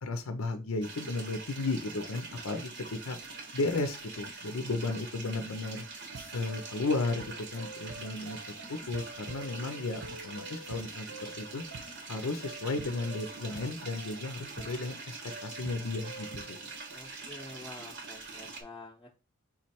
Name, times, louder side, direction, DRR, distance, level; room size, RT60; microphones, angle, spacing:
voice 1, 0.0-3.2 3.5-5.8 6.3-8.4 8.7-11.6 12.1-15.1 15.4-16.6, left 3 dB, 70° left, 7 dB, 0.6 m, -34 dB
sound 1, 0.8-18.6, right 3 dB, 55° right, 1.0 m, -44 dB
sound 2, 6.1-16.8, right 3 dB, 75° right, 0.8 m, -48 dB
voice 2, 16.9-19.2, left 2 dB, 10° left, -4 dB, 0.7 m, -48 dB
3.9 x 3.1 x 4.2 m, 0.30 s
head